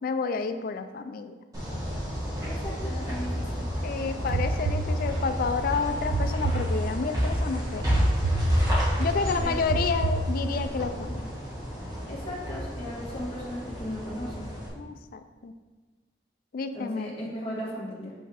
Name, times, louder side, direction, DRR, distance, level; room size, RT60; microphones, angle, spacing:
voice 1, 0.0-1.3 3.8-8.0 9.0-11.3 14.8-15.5 16.5-17.3, left 5 dB, 55° left, 9 dB, 0.3 m, -30 dB
sound 1, 1.5-14.7, equal, 20° right, 1.9 m, -30 dB
voice 2, 2.4-3.6 9.2-9.6 12.1-14.5 16.7-18.1, equal, 35° left, -7 dB, 1.9 m, -36 dB
sound 2, 4.3-5.5 6.1-7.3 7.9-9.0 9.7-10.8, right 3 dB, 55° right, 0.4 m, -29 dB
6.5 x 5.4 x 3.4 m, 1.3 s
head